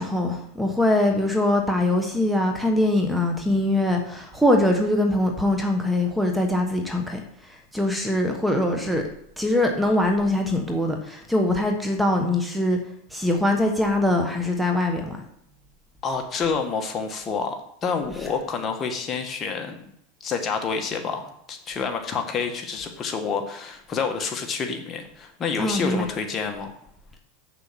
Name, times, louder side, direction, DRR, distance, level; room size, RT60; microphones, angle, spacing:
voice 1, 0.0-7.2 7.7-9.0 9.4-12.8 13.1-15.2 25.6-26.0, left 1 dB, 5° right, 3 dB, 1.3 m, -22 dB
voice 2, 16.0-19.9 20.2-26.8, left 5 dB, 30° left, 4 dB, 1.6 m, -28 dB
7.5 x 7.0 x 5.9 m, 0.73 s
supercardioid pair, 125°, 0 cm